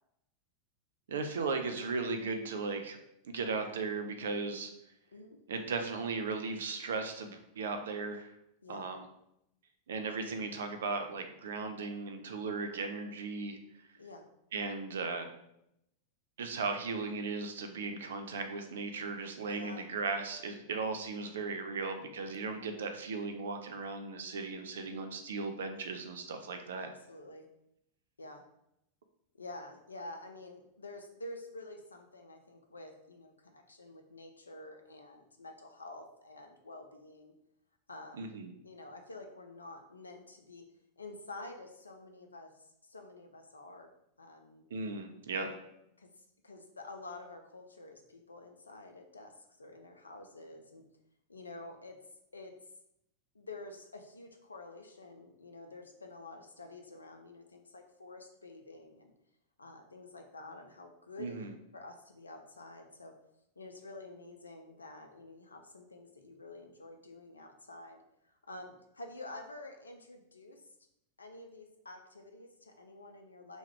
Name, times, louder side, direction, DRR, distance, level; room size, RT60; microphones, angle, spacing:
voice 1, 1.1-3.0 3.2-4.7 5.5-8.3 8.7-9.1 9.9-13.6 14.5-15.3 16.4-26.9 38.2-38.5 44.7-45.5 61.2-61.5, right 4 dB, 65° right, 6 dB, 0.4 m, -37 dB
voice 2, 19.4-19.9 26.8-27.4 28.2-28.4 29.4-37.3 37.9-38.3 38.6-40.6 41.0-42.5 42.8-43.9 44.2-44.6 45.4-45.6 46.0-46.1 46.4-49.3 49.6-50.8 51.3-52.0 52.3-52.5 53.3-59.1 59.6-61.5 61.7-63.1 63.6-68.0 68.5-70.6 71.2-73.6, left 2 dB, 75° left, 4 dB, 0.3 m, -49 dB
2.9 x 2.2 x 3.5 m, 0.80 s
figure-of-eight pair, 90°, 0 cm